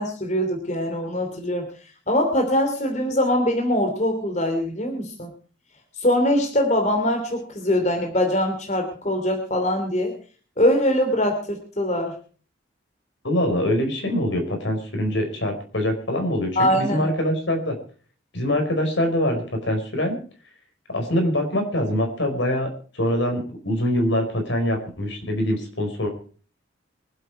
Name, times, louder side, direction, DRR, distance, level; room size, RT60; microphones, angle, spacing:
voice 1, 0.0-1.7 2.1-5.3 6.0-10.1 10.6-12.1 16.6-17.1, left 1 dB, 40° left, 4 dB, 2.9 m, -22 dB
voice 2, 13.2-17.7 18.3-20.2 20.9-26.1, left 1 dB, 75° left, 4 dB, 4.9 m, -24 dB
25.0 x 8.3 x 4.7 m, 0.40 s
head